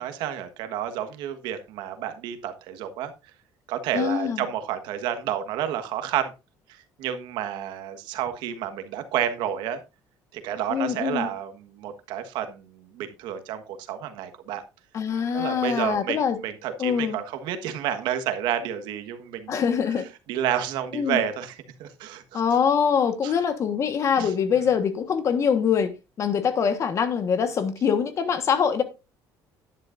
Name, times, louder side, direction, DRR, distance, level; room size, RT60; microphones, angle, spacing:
voice 1, 0.0-3.1 3.7-6.3 6.7-9.8 10.3-14.6 15.3-16.2 16.4-19.6 20.3-22.4 23.2-23.3 24.2-24.3, right 10 dB, 80° right, 1.4 m, -30 dB
voice 2, 3.9-4.4 10.7-11.3 14.9-16.4 16.8-17.2 19.5-20.1 20.9-21.2 22.3-28.8, left 7 dB, 40° left, 1.4 m, -24 dB
11.0 x 10.0 x 2.6 m
cardioid pair, 145°, 8 cm